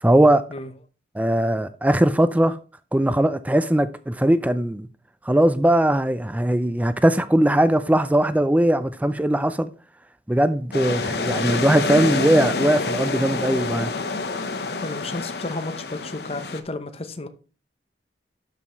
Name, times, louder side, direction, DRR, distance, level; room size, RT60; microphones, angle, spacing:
voice 1, 0.0-0.5 1.2-2.6 2.9-4.9 5.2-9.7 10.3-13.9, right 1 dB, 10° right, 0.4 m, -20 dB
sound 1, 10.7-16.6, left 3 dB, 65° left, 0.9 m, -27 dB
voice 2, 14.8-17.3, left 2 dB, 35° left, 0.8 m, -32 dB
12.0 x 5.6 x 3.1 m
head